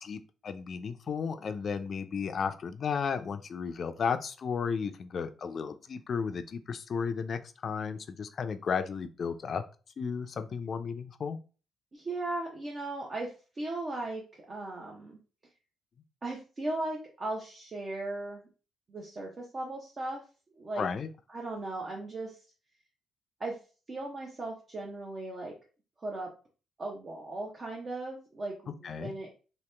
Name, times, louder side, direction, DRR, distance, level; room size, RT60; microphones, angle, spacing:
voice 1, 0.0-9.6 10.0-11.4 20.8-21.1 28.8-29.1, left 6 dB, 50° left, 10 dB, 0.4 m, -34 dB
voice 2, 11.9-15.2 16.2-18.5 18.9-20.2 20.6-20.9 21.3-22.4 23.4-23.6 23.9-25.5 26.0-26.3 26.8-29.3, right 2 dB, 35° right, -1 dB, 0.7 m, -37 dB
2.9 x 2.8 x 3.3 m, 0.36 s
cardioid pair, 90°, 0 cm